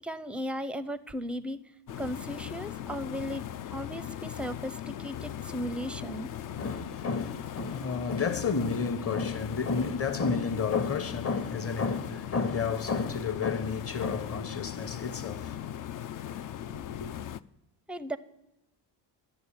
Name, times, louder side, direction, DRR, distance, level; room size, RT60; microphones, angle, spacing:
voice 1, 0.0-1.6 2.0-3.4 3.7-6.3 17.9-18.2, equal, 5° right, 0.5 m, -36 dB
sound 1, 1.9-17.4, left 10 dB, 45° left, 0.5 m, -39 dB
voice 2, 6.6-17.1, left 5 dB, 30° left, 1.0 m, -31 dB
11.0 x 6.7 x 8.7 m
cardioid pair, 95°, 45 cm